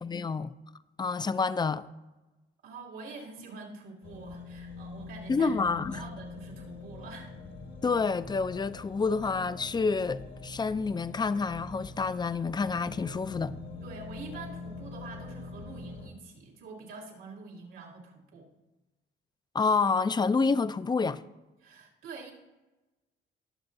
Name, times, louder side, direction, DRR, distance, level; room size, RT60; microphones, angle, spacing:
voice 1, 0.0-0.5 1.0-1.8 5.3-6.0 7.8-13.5 19.5-21.2, left 4 dB, 20° left, 0.4 m, -28 dB
voice 2, 2.6-5.5 5.9-7.3 13.8-18.5 21.6-22.3, right 4 dB, 90° right, 2.8 m, -46 dB
sound 1, 4.0-16.1, left 3 dB, 65° left, 1.6 m, -44 dB
20.5 x 7.1 x 2.7 m
cardioid pair, 90°, 20 cm